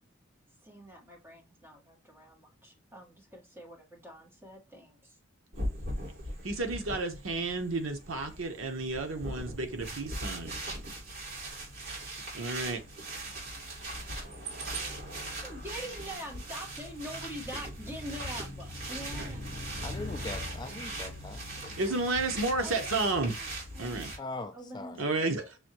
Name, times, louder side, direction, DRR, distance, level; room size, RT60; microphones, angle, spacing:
voice 1, 0.6-5.2 15.4-19.5 22.6-23.5 23.7-24.2 24.5-25.3, equal, 10° right, 1.4 m, -45 dB
sound 1, 5.5-24.2, right 1 dB, 60° right, 2.8 m, -39 dB
voice 2, 6.4-10.6 12.3-12.8 19.1-19.3 21.8-23.3 23.8-24.1 25.0-25.6, right 3 dB, 80° right, 1.0 m, -32 dB
voice 3, 19.8-21.8 24.2-25.0, left 2 dB, 20° left, 0.3 m, -41 dB
6.1 x 2.6 x 2.9 m
head